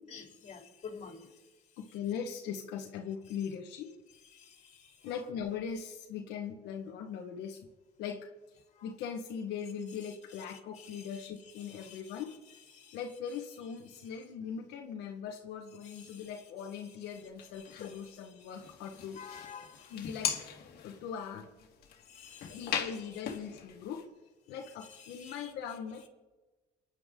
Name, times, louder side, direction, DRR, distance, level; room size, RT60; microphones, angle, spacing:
voice 1, 0.1-1.3 10.5-11.3 11.6-12.1 15.8-16.3 17.8-17.9 19.2-19.9 22.2-23.0 25.0-25.5, left 6 dB, 45° left, 3.6 m, -49 dB
voice 2, 1.8-3.9 5.0-7.6 8.0-8.3 8.8-12.3 12.9-19.2 19.9-20.4 20.8-21.5 22.5-24.0 24.5-26.1, left 7 dB, 90° left, 1.5 m, -40 dB
sound 1, 17.1-18.0 18.5-24.0, left 8 dB, 65° left, 2.3 m, -40 dB
29.0 x 10.5 x 3.8 m
cardioid pair, 110°, 17 cm